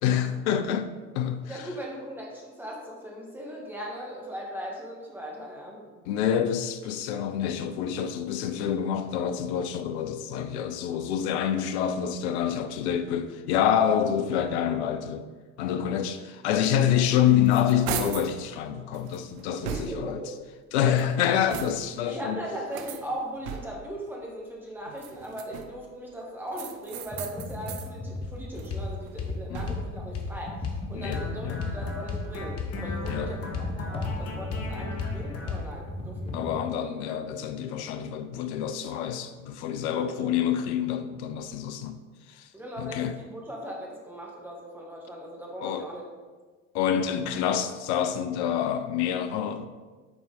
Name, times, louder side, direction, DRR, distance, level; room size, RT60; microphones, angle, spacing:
voice 1, 0.0-1.7 6.1-15.2 15.6-20.2 20.7-22.4 29.5-29.8 30.9-31.6 33.1-33.3 36.3-42.0 42.3-42.5 42.8-43.2 45.6-45.9 46.7-49.7, left 9 dB, 55° left, 0.6 m, -27 dB
voice 2, 1.5-5.8 19.6-20.2 22.1-36.5 39.9-40.2 42.5-46.1, equal, 5° right, 1.4 m, -38 dB
sound 1, 17.0-18.4 18.9-20.2 20.8-22.0 22.7-24.0 24.9-25.9 26.5-27.9 28.3-30.0, right 9 dB, 55° right, 0.6 m, -38 dB
Computer keyboard, 27.1-36.6, left 2 dB, 15° left, 0.7 m, -37 dB
sound 2, 28.2-28.4 28.7-28.9 29.2-29.4 29.7-29.8 30.1-30.3 30.6-30.8 31.1-35.7, left 5 dB, 35° left, 1.0 m, -35 dB
6.7 x 4.3 x 3.8 m
figure-of-eight pair, 65°, 41 cm